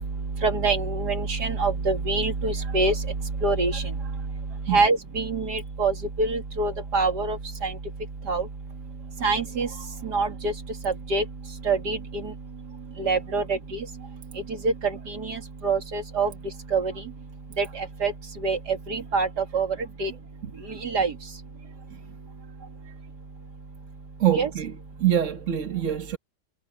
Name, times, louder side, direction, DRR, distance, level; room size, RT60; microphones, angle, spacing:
voice 1, 0.4-2.9 3.4-3.8 4.7-7.7 8.3-8.5 9.2-9.7 10.0-10.5 10.8-11.2 11.7-12.0 13.0-13.6 14.6-16.3 16.7-16.9 17.6-18.1 18.4-19.3 19.5-19.7 20.0-20.1 20.8-21.1 24.3-24.5, right 3 dB, 75° right, 2.7 m, -25 dB
voice 2, 24.2-24.7 25.0-26.2, right 11 dB, 50° right, 1.5 m, -24 dB
omnidirectional pair, 1.8 m